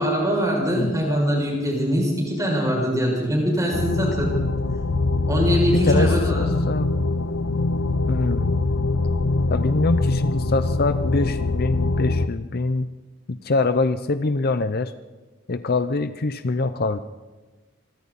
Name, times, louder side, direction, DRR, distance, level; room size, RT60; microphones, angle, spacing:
voice 1, 0.0-4.3 5.3-6.5, equal, 15° right, -1 dB, 6.7 m, -23 dB
sound 1, 3.7-12.3, left 2 dB, 90° left, 0.8 m, -23 dB
voice 2, 5.4-6.9 8.1-8.6 9.5-12.9 13.3-14.9 15.5-17.0, left 3 dB, 50° left, 11 dB, 0.7 m, -24 dB
27.0 x 23.0 x 4.2 m, 1.2 s
head